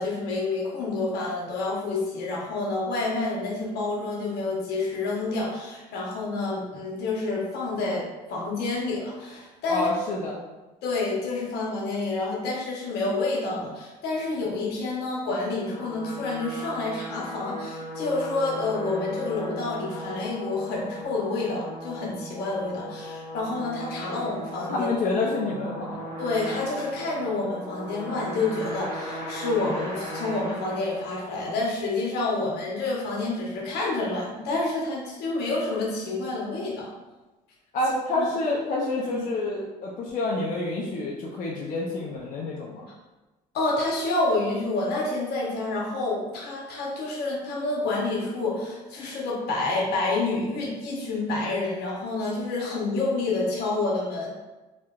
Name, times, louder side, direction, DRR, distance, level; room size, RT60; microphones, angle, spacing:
voice 1, 0.0-9.9 10.8-24.9 26.2-36.9 38.2-38.3 39.0-39.2 43.5-54.3, left 3 dB, 75° left, -4 dB, 1.0 m, -28 dB
voice 2, 9.7-10.4 24.7-26.1 37.7-42.9, left 2 dB, 50° left, -4 dB, 0.5 m, -28 dB
sound 1, 15.3-31.6, equal, 65° right, 1.4 m, -37 dB
3.1 x 2.8 x 2.3 m, 1.1 s
cardioid pair, 110°, 17 cm